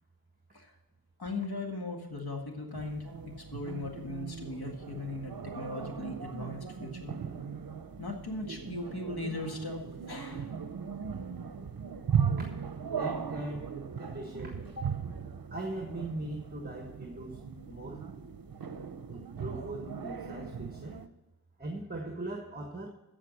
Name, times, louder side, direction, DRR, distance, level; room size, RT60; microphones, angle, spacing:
voice 1, 1.2-7.1 8.0-9.8 10.1-10.5, left 2 dB, 75° left, 2 dB, 1.9 m, -38 dB
sound 1, 2.7-21.1, right 7 dB, 65° right, 0.7 m, -38 dB
voice 2, 12.9-15.0 15.5-17.4 17.6-18.1 19.1-21.0 21.6-22.9, right 1 dB, 25° right, 3 dB, 1.3 m, -40 dB
14.5 x 5.0 x 6.4 m, 1.1 s
wide cardioid pair, 60°, 38 cm